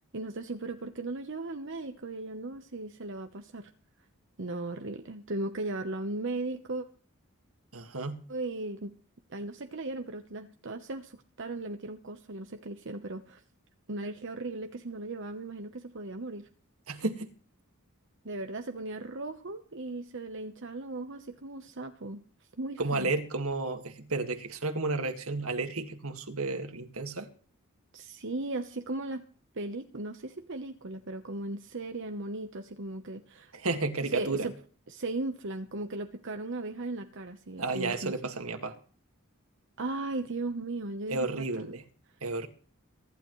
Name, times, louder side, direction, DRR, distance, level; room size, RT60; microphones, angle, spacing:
voice 1, 0.1-3.7 4.4-6.9 8.3-8.9 9.3-13.4 13.9-16.5 18.2-22.2 22.6-23.1 27.9-29.2 29.5-33.5 34.0-34.5 34.9-38.3 39.8-41.7, right 2 dB, 60° right, 6 dB, 1.0 m, -37 dB
voice 2, 7.7-8.2 16.9-17.3 22.8-27.3 33.5-34.5 37.6-38.8 41.1-41.8 42.2-42.5, right 3 dB, 80° right, 7 dB, 2.0 m, -32 dB
23.5 x 12.0 x 3.2 m, 0.42 s
head